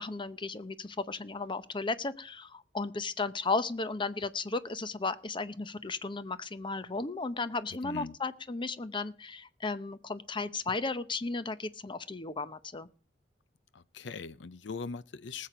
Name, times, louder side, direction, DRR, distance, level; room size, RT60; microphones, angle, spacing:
voice 1, 0.0-12.9, left 3 dB, 25° left, 0.8 m, -35 dB
voice 2, 7.8-8.2 13.7-15.5, left 4 dB, 75° left, 0.6 m, -41 dB
19.0 x 7.6 x 5.0 m
head